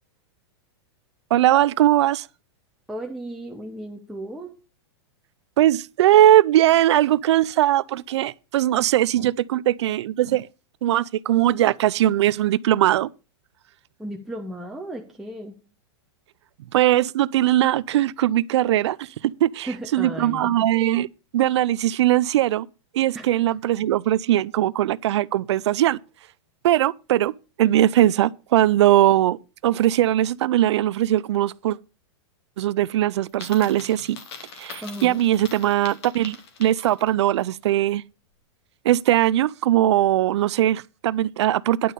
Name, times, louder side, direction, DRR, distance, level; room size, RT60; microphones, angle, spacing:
voice 1, 1.3-2.3 5.6-10.5 10.8-13.1 16.7-21.1 21.3-22.7 22.9-26.0 26.6-27.3 27.6-29.4 29.6-31.8 32.6-34.2 34.6-38.0 38.8-41.9, right 13 dB, 75° right, 0.5 m, -20 dB
voice 2, 2.9-4.6 14.0-15.5 19.7-20.6 23.1-23.3 34.8-35.2, right 1 dB, ahead, 1.0 m, -34 dB
Coin (dropping), 33.3-37.2, left 6 dB, 65° left, 2.5 m, -42 dB
10.5 x 5.4 x 6.7 m
supercardioid pair, 150°, 14 cm